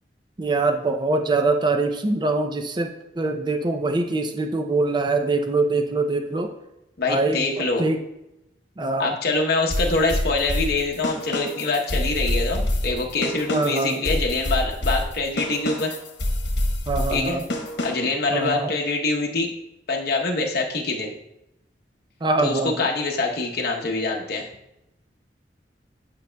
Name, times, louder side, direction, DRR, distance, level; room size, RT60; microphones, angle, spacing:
voice 1, 0.4-2.9 3.2-6.5 7.1-7.5 7.8-8.0 8.8-9.1 13.5-14.0 16.9-17.4 18.3-18.7 22.2-22.9, right 3 dB, 25° right, 5 dB, 0.5 m, -23 dB
voice 2, 7.0-7.9 9.0-15.9 17.1-17.4 17.8-19.5 19.9-21.1 22.4-24.5, left 3 dB, 60° left, 0 dB, 0.9 m, -24 dB
sound 1, 9.7-18.2, left 1 dB, 85° left, 1.1 m, -27 dB
9.3 x 5.5 x 2.2 m, 0.86 s
head